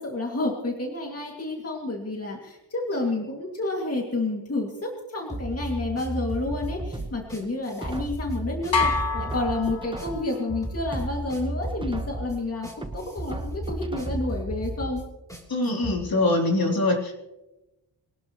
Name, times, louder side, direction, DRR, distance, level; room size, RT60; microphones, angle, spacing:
voice 1, 0.0-15.0, left 2 dB, 35° left, 0 dB, 2.4 m, -30 dB
sound 1, 5.3-16.0, right 1 dB, 5° left, 3.3 m, -34 dB
sound 2, 6.9-8.3 8.8-10.4 10.8-12.3 12.8-14.4 14.8-14.9, right 2 dB, 10° right, 1.1 m, -38 dB
sound 3, 8.7-10.5, left 4 dB, 90° left, 2.1 m, -27 dB
voice 2, 15.5-17.1, left 2 dB, 55° left, -1 dB, 3.6 m, -23 dB
24.0 x 19.0 x 3.1 m, 1.0 s
wide cardioid pair, 140°, 44 cm